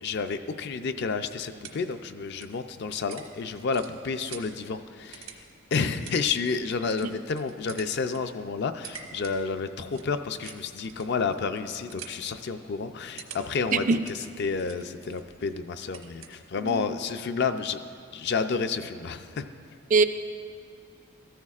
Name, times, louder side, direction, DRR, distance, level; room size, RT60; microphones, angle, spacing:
voice 1, 0.0-5.4 5.7-13.9 14.4-17.8 18.1-19.4, left 5 dB, 55° left, 9 dB, 0.4 m, -30 dB
sound 1, 1.3-16.9, right 6 dB, 80° right, 1.1 m, -49 dB
voice 2, 16.6-17.0 19.9-20.0, right 4 dB, 40° right, 10 dB, 0.4 m, -23 dB
14.0 x 13.5 x 2.4 m, 2.4 s
head